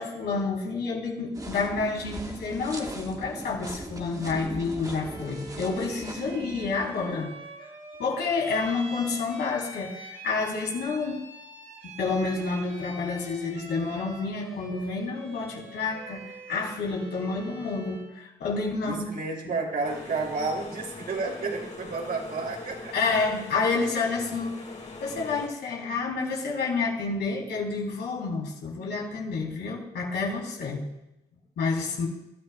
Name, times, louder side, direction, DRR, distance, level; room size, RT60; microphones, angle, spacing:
voice 1, 0.0-7.3 8.0-11.2 12.0-19.1 19.4-19.5 22.9-24.6 25.0-30.8 31.6-32.1, left 4 dB, 75° left, -1 dB, 3.7 m, -29 dB
sound 1, 1.3-7.2, right 2 dB, 20° right, 1.5 m, -39 dB
Bowed string instrument, 5.0-18.2, right 3 dB, 80° right, 4.1 m, -45 dB
voice 2, 18.8-22.9, right 3 dB, 60° right, 1 dB, 3.3 m, -31 dB
sound 2, 19.8-25.5, left 3 dB, 40° left, 3.7 m, -42 dB
23.0 x 13.0 x 2.4 m, 0.91 s
supercardioid pair, 50°, 17 cm